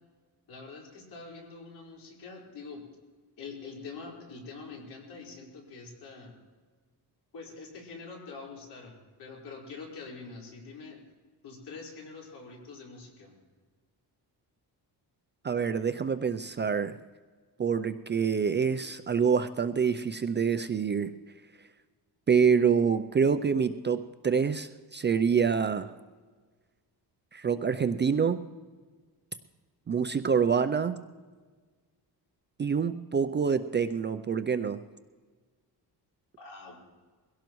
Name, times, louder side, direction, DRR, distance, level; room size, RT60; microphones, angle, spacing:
voice 1, 0.5-2.8 3.4-6.3 7.3-8.9 9.2-11.0 11.4-13.3 36.4-36.8, left 4 dB, 70° left, -2 dB, 4.6 m, -45 dB
voice 2, 15.4-16.9 17.6-21.1 22.3-25.9 27.3-28.4 29.9-31.0 32.6-34.8, right 6 dB, 30° right, 10 dB, 0.4 m, -26 dB
22.5 x 17.0 x 3.1 m, 1.4 s
cardioid pair, 140°, 41 cm